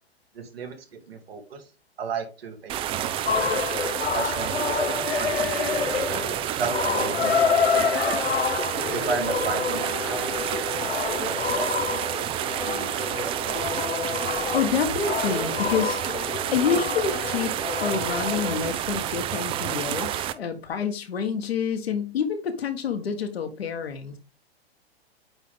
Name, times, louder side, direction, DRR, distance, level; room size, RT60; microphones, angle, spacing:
voice 1, 0.3-1.7 2.0-3.7 4.1-5.9 6.5-8.2 8.9-11.7 12.6-13.6, right 5 dB, 70° right, 2.2 m, -34 dB
sound 1, 2.7-20.3, right 11 dB, 20° right, 0.4 m, -29 dB
sound 2, 3.3-18.6, left 6 dB, 90° left, 0.7 m, -28 dB
voice 2, 14.5-16.0 16.5-24.2, left 7 dB, 75° left, 1.5 m, -28 dB
8.8 x 3.8 x 3.7 m
hypercardioid pair, 110°, 31 cm